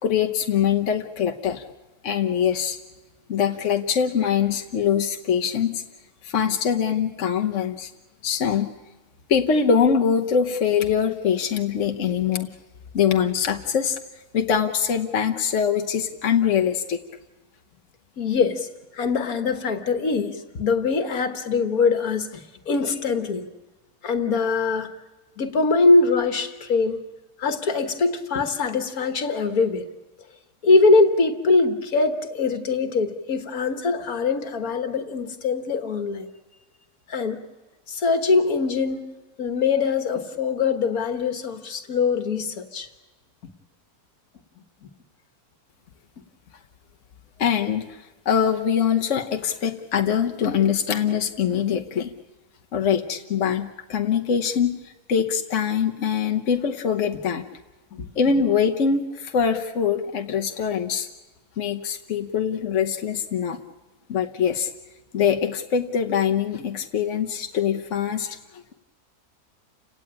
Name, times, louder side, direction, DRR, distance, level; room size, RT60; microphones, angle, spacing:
voice 1, 0.0-1.6 2.0-2.8 3.3-5.8 6.2-7.9 8.2-8.7 9.3-12.5 12.9-14.0 14.3-17.0 47.4-47.9 48.2-52.1 52.7-57.4 58.2-61.1 61.6-63.6 64.1-64.7 65.1-68.7, left 7 dB, 55° left, 2 dB, 1.3 m, -23 dB
voice 2, 18.2-18.7 18.9-23.5 24.0-24.9 25.4-27.0 27.4-29.9 30.6-36.3 37.1-37.4 37.9-39.1 39.4-42.9 57.9-58.1, left 4 dB, 75° left, 7 dB, 1.9 m, -22 dB
29.5 x 17.5 x 8.9 m, 1.2 s
omnidirectional pair, 1.6 m